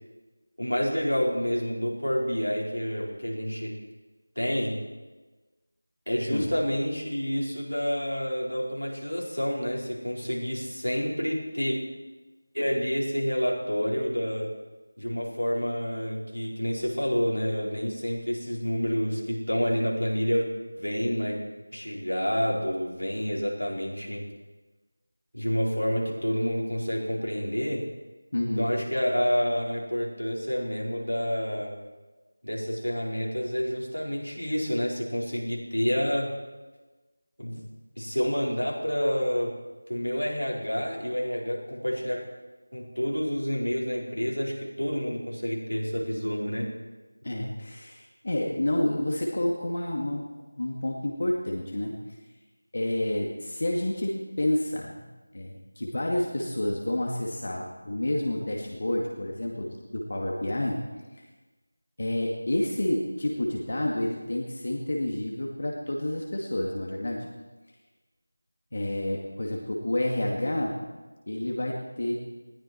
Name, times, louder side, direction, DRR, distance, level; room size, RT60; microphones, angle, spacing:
voice 1, 0.6-3.8 4.4-4.8 6.1-11.8 12.5-14.5 15.0-20.5 20.8-21.4 21.7-24.3 25.3-27.9 28.6-31.8 32.4-36.3 37.4-37.7 38.0-39.5 39.9-42.2 42.7-46.7, equal, 90° left, -3 dB, 4.8 m, -28 dB
voice 2, 28.3-28.7 47.2-50.2 50.6-52.0 52.7-55.0 55.3-60.8 61.1-61.3 62.0-67.2 68.7-70.7 71.3-72.1, left 1 dB, 50° left, -1 dB, 2.2 m, -29 dB
20.5 x 15.0 x 4.6 m, 1.2 s
figure-of-eight pair, 170°, 0 cm